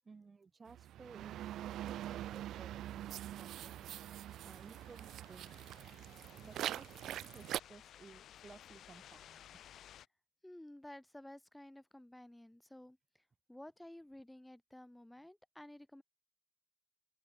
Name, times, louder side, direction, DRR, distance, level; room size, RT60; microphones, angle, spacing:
voice 1, 0.0-1.6 1.9-3.9 4.4-5.6 6.4-9.6, right 4 dB, 35° right, 7.2 m, -58 dB
sound 1, 0.7-7.6, right 12 dB, 80° right, 4.8 m, -44 dB
sound 2, 3.5-10.1, left 11 dB, 70° left, 6.0 m, -59 dB
voice 2, 10.4-13.2 13.5-16.0, left 1 dB, 5° left, 7.8 m, -54 dB
open air
cardioid pair, 90°, 0 cm